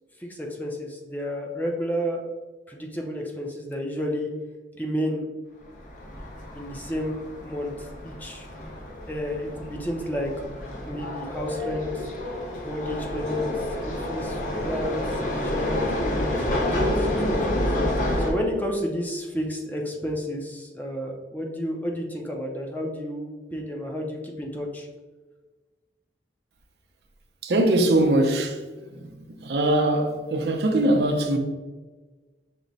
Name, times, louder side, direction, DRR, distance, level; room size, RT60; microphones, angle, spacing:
voice 1, 0.2-2.2 2.7-4.3 4.8-5.3 6.5-8.5 9.1-10.3 10.9-12.0 12.6-17.6 17.9-24.9, equal, 10° left, 0.5 m, -31 dB
sound 1, 5.7-18.3, left 1 dB, 45° left, 0.9 m, -29 dB
voice 2, 27.4-28.6 29.0-29.1 29.4-31.4, right 1 dB, 65° right, 0.5 m, -21 dB
5.9 x 2.1 x 3.9 m
head